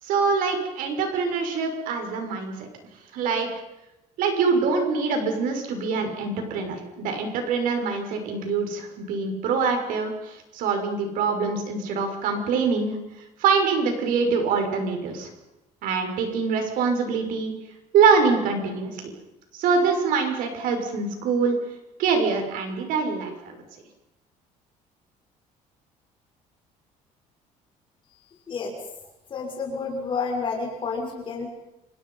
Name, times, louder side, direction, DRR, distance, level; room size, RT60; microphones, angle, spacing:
voice 1, 0.0-2.7 3.1-3.5 4.2-13.0 13.4-15.3 15.8-17.5 17.9-19.1 19.5-21.5 22.0-23.6, right 5 dB, 75° right, 4 dB, 6.1 m, -24 dB
voice 2, 29.3-31.5, left 4 dB, 35° left, 0 dB, 5.7 m, -29 dB
28.0 x 27.5 x 5.7 m, 0.93 s
cardioid pair, 145°, 14 cm